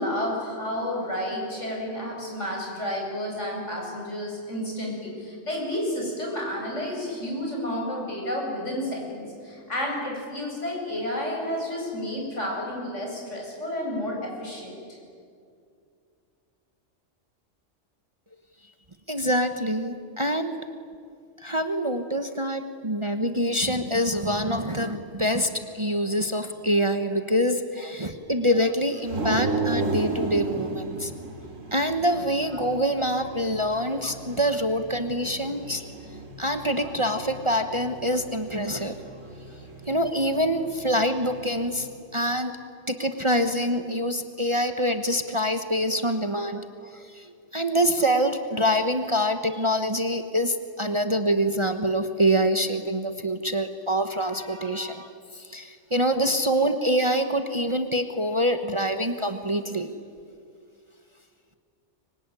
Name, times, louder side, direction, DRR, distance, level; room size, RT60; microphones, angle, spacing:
voice 1, 0.0-15.0, left 1 dB, 70° left, -1 dB, 8.3 m, -31 dB
voice 2, 19.1-20.6 21.4-31.1 31.7-35.8 36.4-39.0 39.9-42.6 42.9-59.9, equal, 25° right, 7 dB, 1.2 m, -25 dB
sound 1, 29.0-41.9, right 3 dB, 90° right, 3.3 m, -35 dB
24.5 x 24.5 x 9.9 m, 2.3 s
omnidirectional pair, 1.3 m